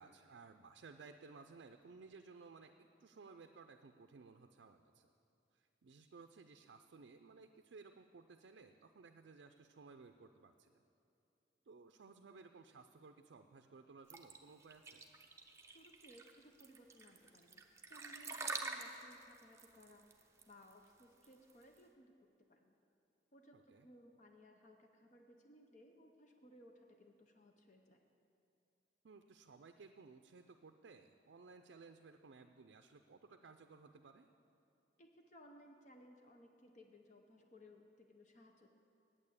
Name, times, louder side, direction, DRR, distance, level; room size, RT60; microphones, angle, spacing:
voice 1, 0.0-5.1 5.5-10.8 11.7-15.1 23.5-23.9 29.0-34.3, right 4 dB, 70° right, 6 dB, 0.4 m, -58 dB
sound 1, 14.1-21.8, right 3 dB, 15° right, 0.6 m, -47 dB
voice 2, 15.6-17.6 17.9-22.1 22.5-22.8 23.3-28.0 35.0-38.7, equal, 40° left, 3 dB, 0.7 m, -62 dB
8.8 x 8.7 x 8.4 m, 2.7 s
head